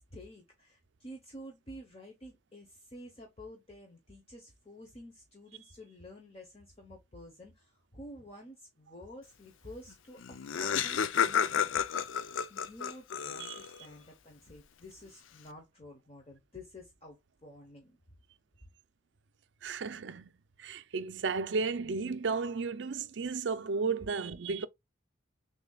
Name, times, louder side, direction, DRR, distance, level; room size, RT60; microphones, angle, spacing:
voice 1, 0.0-11.7 12.5-18.0, left 1 dB, 30° left, 0.9 m, -50 dB
Laughter, 9.9-10.0 10.2-13.9, left 8 dB, 85° left, 0.5 m, -31 dB
voice 2, 19.6-20.3 20.6-24.7, right 4 dB, 65° right, 0.5 m, -33 dB
6.7 x 2.7 x 2.3 m
head